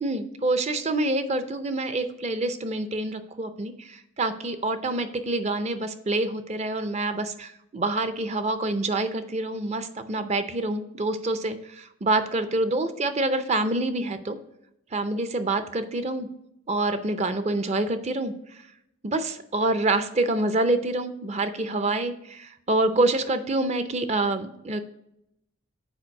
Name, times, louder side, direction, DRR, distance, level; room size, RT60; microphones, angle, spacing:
voice 1, 0.0-14.4 14.9-16.3 16.7-18.6 19.0-24.8, right 2 dB, 30° right, 10 dB, 0.5 m, -26 dB
7.2 x 4.6 x 5.3 m, 0.81 s
head